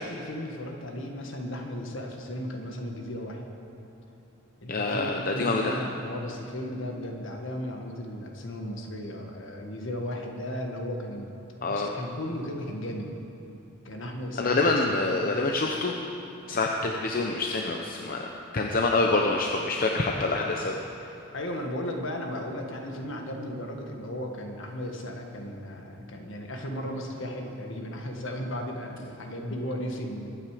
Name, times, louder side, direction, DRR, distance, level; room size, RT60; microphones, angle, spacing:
voice 1, 0.0-3.4 4.6-11.3 11.6-13.1 13.8-15.4 21.3-30.3, equal, 60° left, 2 dB, 1.6 m, -35 dB
voice 2, 4.7-5.8 11.6-11.9 14.4-15.9 16.5-18.3 18.5-20.8, left 3 dB, 40° left, 1 dB, 0.7 m, -26 dB
22.5 x 9.0 x 5.0 m, 2.8 s
head